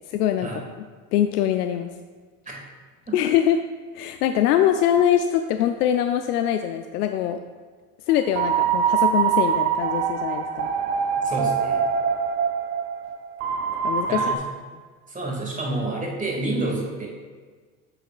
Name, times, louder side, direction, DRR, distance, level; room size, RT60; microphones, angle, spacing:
voice 1, 0.1-0.6 1.1-1.9 3.1-3.6 3.9-7.4 8.1-10.7 13.8-14.2, left 10 dB, 85° left, 7 dB, 0.5 m, -23 dB
sound 1, 8.1-14.4, right 7 dB, 60° right, 1.0 m, -24 dB
voice 2, 11.2-11.8 14.1-14.4 15.1-17.1, right 2 dB, 15° right, -2 dB, 2.2 m, -29 dB
9.9 x 6.5 x 2.4 m, 1.5 s
hypercardioid pair, 85°, 46 cm